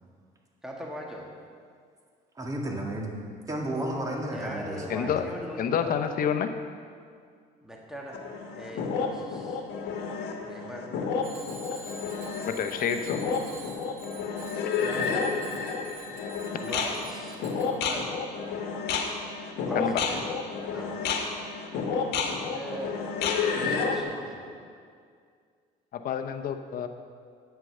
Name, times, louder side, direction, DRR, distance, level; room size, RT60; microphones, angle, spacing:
voice 1, 0.6-1.3 4.3-6.2 7.6-8.2 8.5-9.7 10.4-11.1 11.7-11.9 14.8-15.4 16.6-18.1 19.6-20.2 20.7-21.0 22.2-22.9 23.4-24.5, equal, 5° right, -2 dB, 1.7 m, -40 dB
voice 2, 2.4-3.1 3.5-5.3, right 1 dB, 20° right, 0 dB, 1.9 m, -33 dB
voice 3, 4.9-5.2 5.6-6.5 12.5-13.2 19.8-20.0 25.9-26.9, left 8 dB, 60° left, 7 dB, 0.8 m, -28 dB
sound 1, 8.1-24.0, left 5 dB, 75° left, 1.3 m, -31 dB
Bicycle bell, 11.2-17.7, right 2 dB, 50° right, 2.5 m, -47 dB
9.1 x 8.2 x 6.7 m, 2.1 s
cardioid pair, 110°, 17 cm